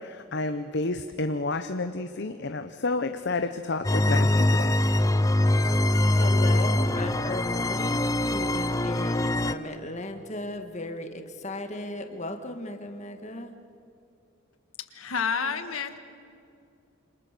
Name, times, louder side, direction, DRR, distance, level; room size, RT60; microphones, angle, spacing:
voice 1, 0.0-4.8, left 3 dB, 55° left, 8 dB, 0.8 m, -30 dB
sound 1, 3.8-9.5, left 1 dB, 15° left, 0.7 m, -23 dB
voice 2, 6.1-13.5, left 1 dB, 35° left, 5 dB, 1.9 m, -36 dB
voice 3, 14.9-16.0, left 6 dB, 85° left, 8 dB, 1.6 m, -29 dB
28.0 x 26.5 x 6.8 m, 2.6 s
head